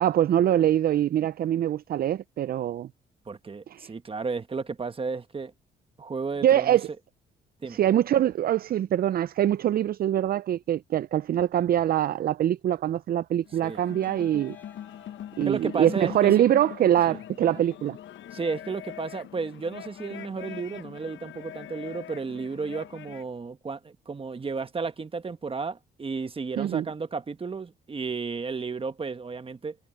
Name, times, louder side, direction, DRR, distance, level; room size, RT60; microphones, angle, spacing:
voice 1, 0.0-2.9 3.7-3.9 6.4-6.9 7.7-14.6 15.4-18.0 26.6-26.9, right 11 dB, 50° right, 0.4 m, -24 dB
voice 2, 3.3-5.5 6.0-6.8 7.6-7.8 13.6-13.8 15.4-16.4 17.1-17.2 18.3-29.8, right 4 dB, 25° right, 1.3 m, -33 dB
sound 1, 13.4-23.3, left 11 dB, 70° left, 0.9 m, -42 dB
Trumpet, 14.0-16.7, left 1 dB, 10° left, 3.0 m, -59 dB
cardioid pair, 90°, 20 cm